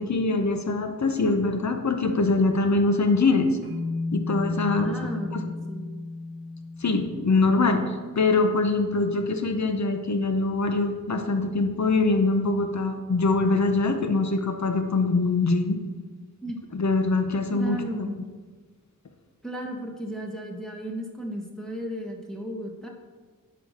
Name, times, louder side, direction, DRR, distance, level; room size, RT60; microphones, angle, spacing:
voice 1, 0.0-3.5 4.1-4.9 5.3-5.5 6.8-15.8 16.7-18.1, left 3 dB, 55° left, 6 dB, 1.1 m, -23 dB
sound 1, 3.6-7.9, left 3 dB, 30° left, 2.9 m, -33 dB
voice 2, 4.7-5.9 16.4-16.6 17.5-18.2 19.4-22.9, equal, ahead, -1 dB, 1.6 m, -34 dB
11.0 x 5.0 x 6.6 m, 1.4 s
wide cardioid pair, 90°, 34 cm